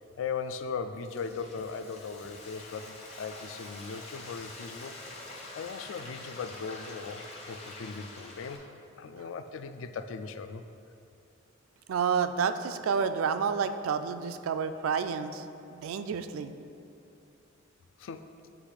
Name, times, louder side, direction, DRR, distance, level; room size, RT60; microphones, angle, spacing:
voice 1, 0.2-4.9 5.3-8.7 8.9-10.6 18.0-18.3, left 5 dB, 65° left, 9 dB, 0.3 m, -38 dB
Frying (food), 0.7-8.6, left 2 dB, 30° left, 0.8 m, -46 dB
voice 2, 11.9-15.4 15.7-16.5, right 6 dB, 80° right, 10 dB, 0.3 m, -29 dB
8.2 x 3.0 x 4.9 m, 2.8 s
head